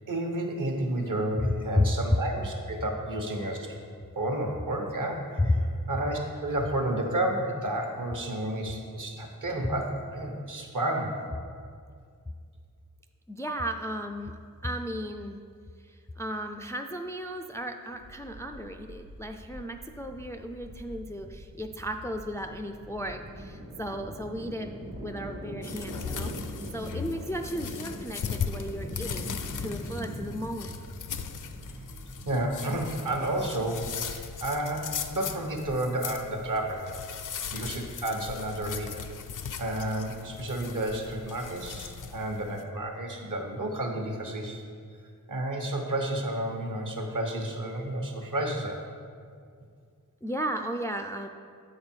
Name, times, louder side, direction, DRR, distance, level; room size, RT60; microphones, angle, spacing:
voice 1, 0.1-3.7 4.1-5.5 5.9-11.2 32.3-37.0 37.5-39.0 39.6-44.6 45.3-48.8, right 1 dB, 60° right, 2 dB, 1.1 m, -31 dB
voice 2, 1.4-1.9 5.4-5.5 13.3-14.4 14.6-15.4 15.8-26.3 26.7-30.8 50.2-51.3, left 1 dB, 10° left, 5 dB, 0.3 m, -34 dB
sound 1, 18.0-35.0, right 1 dB, 85° right, 1.3 m, -42 dB
sound 2, 25.6-42.6, left 7 dB, 65° left, 0.5 m, -38 dB
7.6 x 5.1 x 4.4 m, 2.2 s
wide cardioid pair, 65°, 35 cm